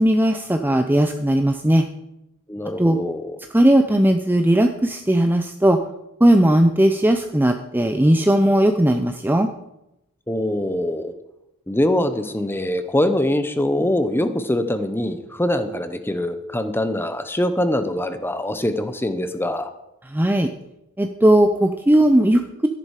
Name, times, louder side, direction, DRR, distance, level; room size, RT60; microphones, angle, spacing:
voice 1, 0.0-1.8 2.8-3.0 3.5-5.8 6.2-9.5 20.1-20.5 21.0-22.7, right 1 dB, 10° right, 5 dB, 0.5 m, -17 dB
voice 2, 2.5-3.3 10.3-11.1 11.7-19.7, left 1 dB, 10° left, 9 dB, 0.9 m, -23 dB
13.5 x 11.0 x 4.9 m, 0.88 s
head